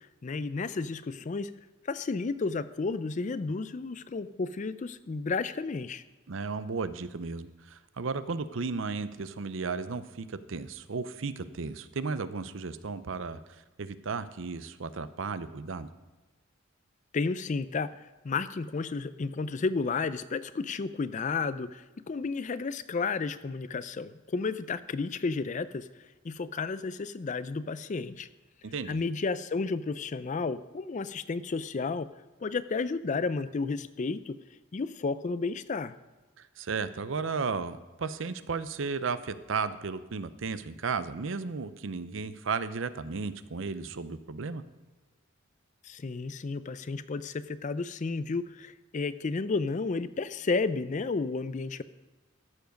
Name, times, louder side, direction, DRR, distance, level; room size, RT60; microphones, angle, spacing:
voice 1, 0.2-1.5 1.8-6.0 17.1-28.3 28.9-32.1 32.4-34.4 34.7-36.0 45.8-51.8, left 4 dB, 35° left, 15 dB, 0.4 m, -32 dB
voice 2, 6.3-15.9 28.6-29.0 36.4-44.6, right 4 dB, 65° right, 13 dB, 0.6 m, -34 dB
14.0 x 7.1 x 5.2 m, 1.2 s
head